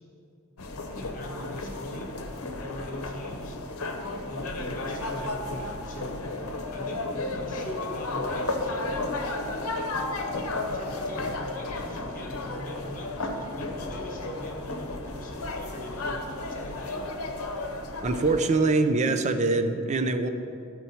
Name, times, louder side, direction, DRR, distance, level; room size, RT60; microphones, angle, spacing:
sound 1, 0.6-18.4, left 2 dB, 80° left, 0.8 m, -33 dB
voice 1, 1.0-2.2 2.6-3.6 4.3-6.2 6.7-7.1 7.3-9.0 10.4-17.1, left 1 dB, 40° left, 0 dB, 1.2 m, -41 dB
voice 2, 18.0-20.3, right 3 dB, 30° right, 8 dB, 0.4 m, -24 dB
13.5 x 4.5 x 4.2 m, 2.7 s
head